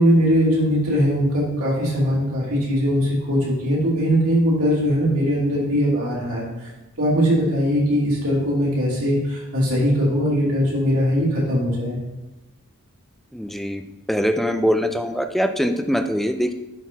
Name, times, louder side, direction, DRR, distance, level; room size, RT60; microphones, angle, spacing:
voice 1, 0.0-6.7 7.0-12.0, equal, 70° right, -6 dB, 2.9 m, -20 dB
voice 2, 13.3-13.8 14.1-16.5, equal, ahead, 7 dB, 0.4 m, -22 dB
10.5 x 4.2 x 4.0 m, 1.0 s
head